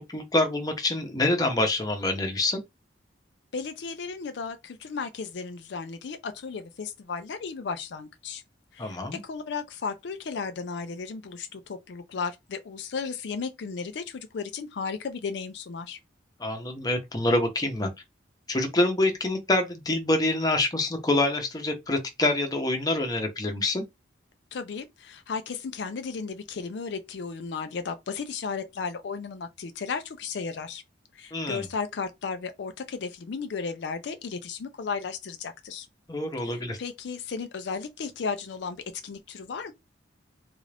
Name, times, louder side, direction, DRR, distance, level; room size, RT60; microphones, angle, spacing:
voice 1, 0.0-2.6 8.8-9.2 16.4-17.9 18.5-23.8 31.3-31.7 36.1-36.8, left 2 dB, 20° left, 0.8 m, -26 dB
voice 2, 3.5-8.4 8.7-16.0 24.5-30.8 31.1-35.9 36.4-39.7, left 5 dB, 65° left, 0.4 m, -35 dB
3.7 x 2.5 x 3.3 m
head